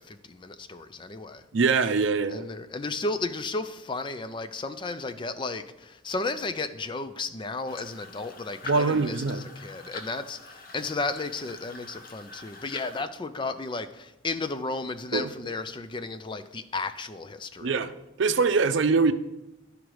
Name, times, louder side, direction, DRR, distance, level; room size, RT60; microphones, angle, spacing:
voice 1, 0.0-1.4 2.3-17.8, left 3 dB, 25° left, 0.4 m, -34 dB
voice 2, 1.5-2.4 8.6-9.4 15.1-15.3 17.6-17.9 18.2-19.1, right 4 dB, 70° right, 0.5 m, -23 dB
sound 1, 7.7-13.0, left 3 dB, 50° left, 0.9 m, -45 dB
12.0 x 5.0 x 4.7 m
head